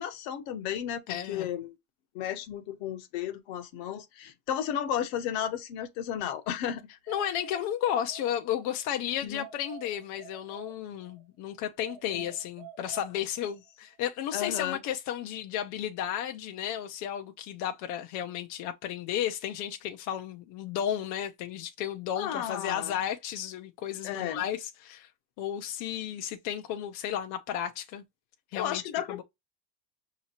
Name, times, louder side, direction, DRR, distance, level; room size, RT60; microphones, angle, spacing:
voice 1, 0.0-1.7 2.1-6.8 9.2-9.4 12.1-12.3 14.3-14.8 22.2-23.1 24.0-24.5 28.5-29.2, left 10 dB, 55° left, 0.9 m, -33 dB
voice 2, 1.1-1.5 7.1-25.1 25.4-28.0 28.5-28.8 29.1-29.2, left 10 dB, 40° left, 0.5 m, -33 dB
sound 1, 7.1-8.8 9.4-11.3 11.8-13.7, right 10 dB, 65° right, 1.0 m, -49 dB
5.6 x 2.9 x 2.8 m
supercardioid pair, 155°, 47 cm